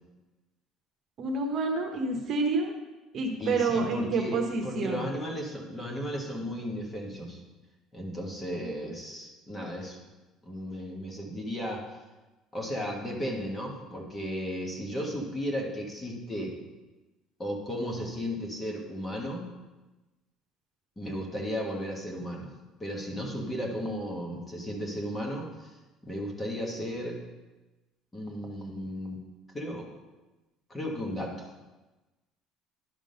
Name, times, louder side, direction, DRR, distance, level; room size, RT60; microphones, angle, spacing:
voice 1, 1.2-2.7 3.1-5.0, right 3 dB, 45° right, 2 dB, 1.1 m, -28 dB
voice 2, 3.4-7.4 7.9-10.0 10.4-12.0 12.5-16.6 17.4-19.5 21.0-22.5 22.8-25.7 26.0-27.2 28.1-29.2 29.5-29.9 30.7-31.5, equal, 15° left, 0 dB, 1.4 m, -35 dB
11.0 x 3.8 x 5.2 m, 1.1 s
cardioid pair, 130°, 0 cm